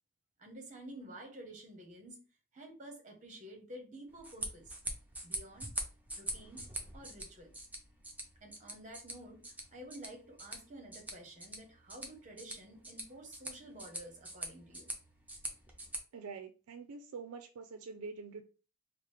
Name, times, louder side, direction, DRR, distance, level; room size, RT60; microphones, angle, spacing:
voice 1, 0.4-2.2 2.5-4.8 5.2-5.7 6.2-7.5 8.4-9.5 9.7-14.9, right 1 dB, 35° right, 0.9 m, -51 dB
sound 1, 4.1-16.0, right 1 dB, 5° right, 0.6 m, -44 dB
voice 2, 16.1-18.4, right 4 dB, 70° right, 0.4 m, -45 dB
4.7 x 2.0 x 3.2 m
head